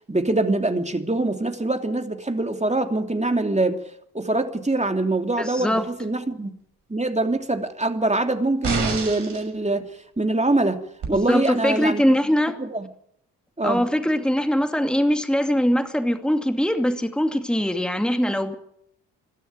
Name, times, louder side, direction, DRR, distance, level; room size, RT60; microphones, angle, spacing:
voice 1, 0.1-3.8 4.1-6.5 6.9-9.9 10.2-10.8 11.1-12.0 12.6-12.9 13.6-13.8, right 2 dB, 15° right, 3.1 m, -24 dB
voice 2, 5.4-5.9 11.1-12.6 13.6-18.5, equal, ahead, 2.5 m, -22 dB
sound 1, 8.6-9.5 11.0-11.1, right 4 dB, 60° right, 6.1 m, -27 dB
24.5 x 12.5 x 9.1 m
hypercardioid pair, 45°, 45 cm